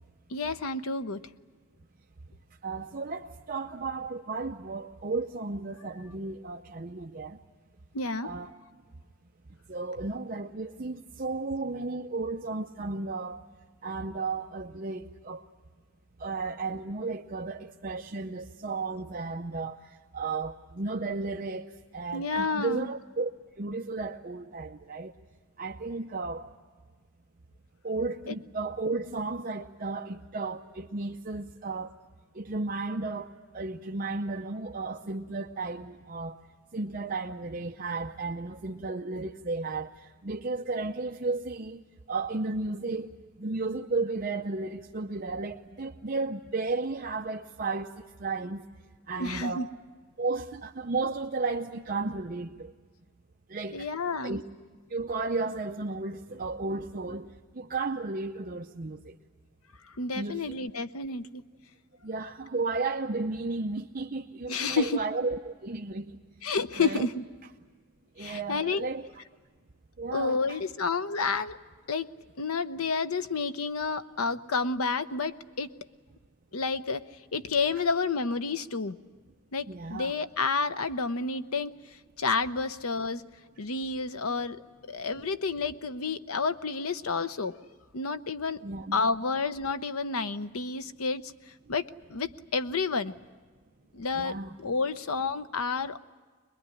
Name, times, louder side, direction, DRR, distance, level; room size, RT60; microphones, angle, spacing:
voice 1, 0.3-1.2 7.9-8.3 22.1-22.9 28.3-28.4 49.2-49.7 53.7-54.4 59.9-61.4 64.5-65.0 66.4-67.3 68.2-68.9 70.1-71.6 71.9-72.1 72.4-75.7 76.5-77.0 77.3-79.0 79.5-81.7 82.2-83.2 83.6-84.6 84.9-87.6 87.9-88.6 88.9-91.3 91.7-93.2 93.9-96.0, left 4 dB, 80° left, 11 dB, 0.8 m, -30 dB
voice 2, 2.6-7.4 8.2-8.5 9.7-13.4 13.8-15.4 16.2-19.8 20.1-23.3 23.6-25.1 25.6-26.4 27.8-31.9 32.3-36.4 36.7-39.9 40.2-41.8 42.1-47.9 48.2-48.6 49.1-49.7 50.2-52.7 53.5-53.9 54.2-54.4 54.9-57.3 57.6-59.2 60.1-60.5 62.0-66.1 66.8-67.1 68.2-69.1 70.0-70.6 79.7-80.1 88.6-89.0 94.1-94.5, right 3 dB, 40° right, 2 dB, 0.7 m, -33 dB
23.5 x 21.5 x 9.8 m, 1.5 s
head